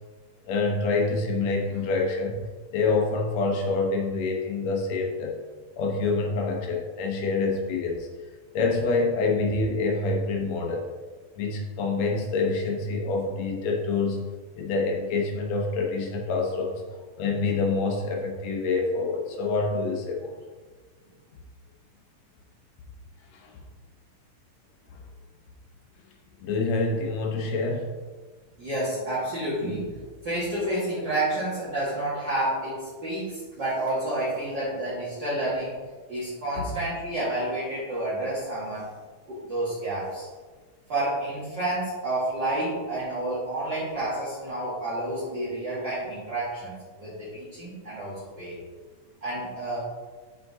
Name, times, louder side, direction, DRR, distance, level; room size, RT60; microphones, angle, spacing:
voice 1, 0.5-2.4 2.7-5.4 5.8-8.1 8.5-10.9 11.4-14.2 14.5-16.8 17.2-20.3 23.3-23.5 24.9-25.0 26.4-27.9 36.6-36.7, left 3 dB, 65° left, 1 dB, 2.0 m, -26 dB
voice 2, 28.6-29.9 30.2-35.7 36.1-38.9 39.3-40.3 40.9-48.5 49.2-49.8, right 1 dB, 40° right, -12 dB, 2.2 m, -29 dB
7.6 x 5.2 x 3.7 m, 1.4 s
omnidirectional pair, 3.6 m